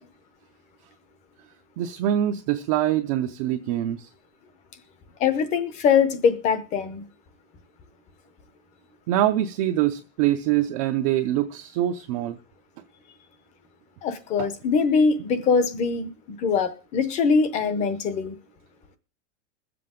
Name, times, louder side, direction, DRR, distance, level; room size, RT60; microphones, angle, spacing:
voice 1, 1.8-4.1 9.1-12.4 14.4-14.5, right 12 dB, 30° right, 0.5 m, -24 dB
voice 2, 5.2-7.0 14.0-16.1 16.4-18.3, left 5 dB, 20° left, 0.7 m, -22 dB
22.0 x 7.7 x 3.6 m
supercardioid pair, 180°, 37 cm